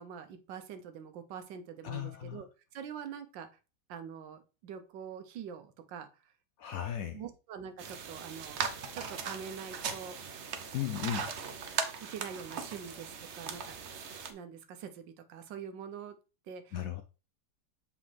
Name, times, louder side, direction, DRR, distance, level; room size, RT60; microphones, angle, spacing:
voice 1, 0.0-2.5 2.7-3.5 3.9-6.3 7.1-10.2 12.0-13.7 14.1-16.1 16.4-16.8, right 7 dB, 85° right, 1.5 m, -45 dB
voice 2, 1.8-2.4 6.6-7.2 10.7-11.3 16.7-17.0, left 10 dB, 75° left, 0.8 m, -36 dB
sound 1, 7.8-14.3, right 6 dB, 60° right, 0.7 m, -39 dB
7.6 x 4.2 x 3.2 m
omnidirectional pair, 1.9 m